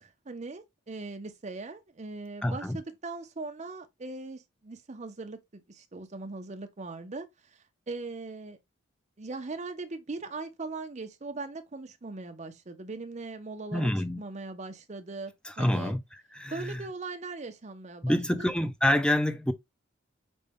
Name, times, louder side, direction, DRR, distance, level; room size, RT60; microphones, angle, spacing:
voice 1, 0.0-7.3 7.9-8.6 9.2-13.9 14.2-15.9 16.5-18.5, right 3 dB, 35° right, 0.6 m, -40 dB
voice 2, 2.4-2.8 13.7-14.2 15.4-16.9 18.0-19.5, left 1 dB, 5° left, 0.4 m, -27 dB
5.1 x 2.2 x 3.4 m
head